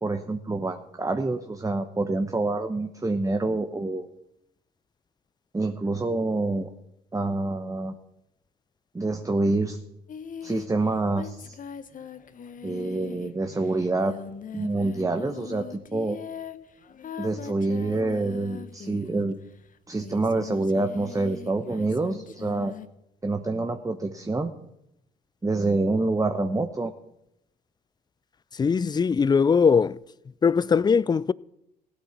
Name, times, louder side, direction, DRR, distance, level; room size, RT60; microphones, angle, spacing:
voice 1, 0.0-4.1 5.5-6.7 7.1-7.9 8.9-9.8 10.4-11.6 12.6-14.1 14.5-16.2 17.2-19.4 19.9-22.7 23.2-24.5 25.4-26.9, right 2 dB, 15° right, 1.0 m, -27 dB
Singing, 10.1-19.5 19.9-22.9, left 7 dB, 45° left, 1.0 m, -41 dB
voice 2, 28.6-30.0 30.4-31.3, left 6 dB, 20° left, 0.4 m, -20 dB
16.0 x 8.6 x 6.0 m
hypercardioid pair, 55°, 20 cm